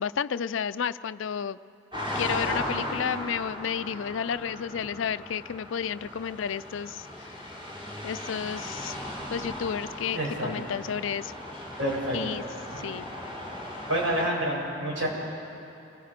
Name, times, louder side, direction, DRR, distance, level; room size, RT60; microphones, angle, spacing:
voice 1, 0.0-1.6 2.1-7.4 8.0-9.0 9.3-11.3 12.1-12.4 12.8-13.1, left 7 dB, 75° left, 15 dB, 0.4 m, -31 dB
sound 1, 1.9-14.3, left 1 dB, 25° right, 3.9 m, -37 dB
voice 2, 10.1-10.5 11.8-12.2 12.7-12.9 13.9-15.1, right 1 dB, 85° right, -4 dB, 7.6 m, -28 dB
29.5 x 21.0 x 5.1 m, 2.8 s
head